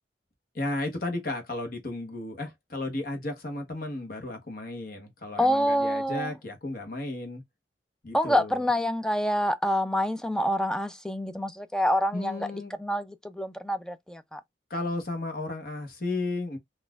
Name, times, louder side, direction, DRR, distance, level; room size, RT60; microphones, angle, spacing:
voice 1, 0.5-7.4 8.0-8.7 12.1-12.8 14.7-16.6, left 2 dB, 50° left, 1.0 m, -34 dB
voice 2, 5.4-6.3 8.1-12.5 12.8-14.4, equal, 5° left, 0.3 m, -27 dB
3.9 x 2.4 x 2.3 m
head